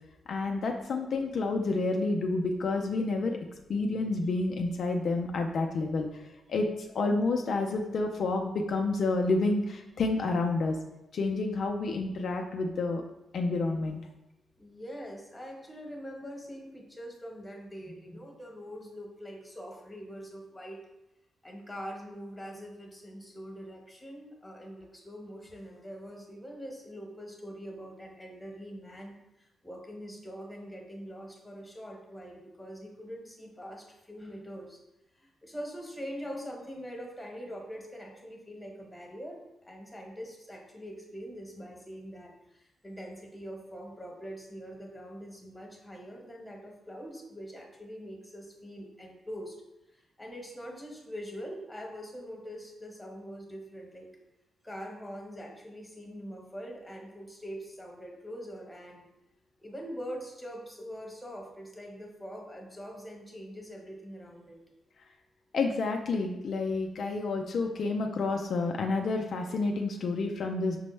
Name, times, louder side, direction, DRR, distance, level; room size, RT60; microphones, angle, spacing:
voice 1, 0.3-3.4 3.7-6.1 6.5-10.8 11.1-13.0 13.3-14.0 65.5-70.8, left 3 dB, 65° left, 2 dB, 0.3 m, -29 dB
voice 2, 14.6-20.8 21.4-34.8 35.1-49.6 49.9-54.1 54.6-59.1 59.6-64.6, equal, 10° left, 0 dB, 1.1 m, -43 dB
5.1 x 2.0 x 3.1 m, 0.94 s
supercardioid pair, 60°, 0 cm